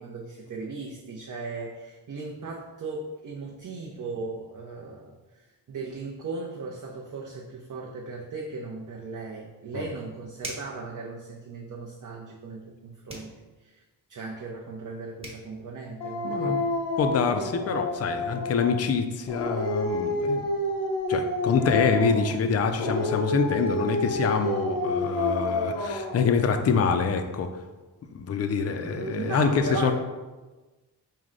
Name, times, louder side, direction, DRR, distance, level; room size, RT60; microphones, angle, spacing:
voice 1, 0.0-13.3 13.6-13.8 14.1-16.7 28.7-29.9, right 4 dB, 50° right, -2 dB, 0.6 m, -37 dB
sound 1, 10.4-10.8 13.1-13.4 14.9-15.0 15.2-15.4, right 1 dB, 15° right, 1.1 m, -39 dB
Dog, 16.0-18.8 19.3-22.4 22.8-26.3, left 2 dB, 85° left, 0.9 m, -28 dB
voice 2, 16.2-16.6 17.0-20.4 21.1-27.5 28.1-29.9, left 5 dB, 40° left, 7 dB, 0.4 m, -26 dB
4.8 x 2.1 x 3.7 m, 1.2 s
wide cardioid pair, 90°, 41 cm